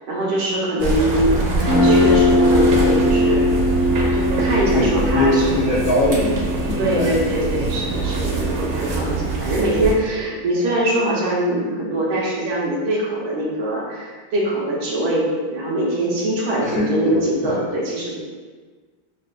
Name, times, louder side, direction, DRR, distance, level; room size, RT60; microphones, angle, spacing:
voice 1, 0.1-3.4 4.1-5.5 6.8-18.2, right 1 dB, 85° right, -5 dB, 1.8 m, -23 dB
sound 1, 0.8-9.9, right 3 dB, 70° right, 1.3 m, -24 dB
Guitar, 1.6-9.3, left 2 dB, 25° left, 0.7 m, -21 dB
voice 2, 4.7-6.4 6.7-7.2 16.6-17.6, left 1 dB, 75° left, -6 dB, 0.8 m, -21 dB
6.7 x 2.4 x 2.2 m, 1.4 s
omnidirectional pair, 2.2 m